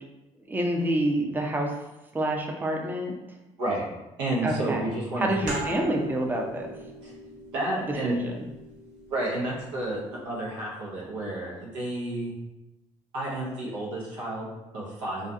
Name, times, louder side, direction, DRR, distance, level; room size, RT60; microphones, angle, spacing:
voice 1, 0.5-1.7 2.1-3.2 4.4-4.9 5.2-6.7 7.9-8.4, right 1 dB, 15° right, 0 dB, 0.5 m, -27 dB
voice 2, 4.2-5.3 7.0-7.1 7.5-8.2 9.1-12.3 13.1-15.3, right 1 dB, 85° right, -5 dB, 0.7 m, -31 dB
sound 1, 5.5-10.7, right 1 dB, 60° right, 1.0 m, -41 dB
2.4 x 2.3 x 2.6 m, 0.98 s
hypercardioid pair, 50°, 14 cm